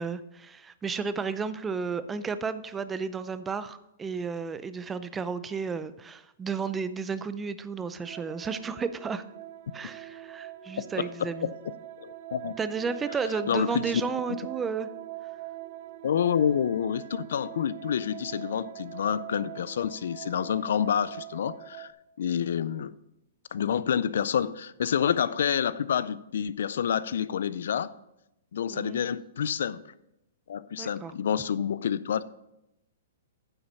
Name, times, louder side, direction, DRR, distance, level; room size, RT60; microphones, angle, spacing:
voice 1, 0.0-9.2 9.7-11.5 12.6-14.9 28.7-29.0 30.7-31.1, right 5 dB, 15° right, 0.5 m, -33 dB
sound 1, 8.0-21.9, right 15 dB, 55° right, 0.7 m, -43 dB
voice 2, 10.8-11.5 12.0-12.6 13.5-14.0 16.0-21.9 22.2-22.9 23.5-27.9 28.5-29.8 30.5-32.3, left 8 dB, 70° left, 0.4 m, -28 dB
9.7 x 5.7 x 5.3 m
hypercardioid pair, 130°, 0 cm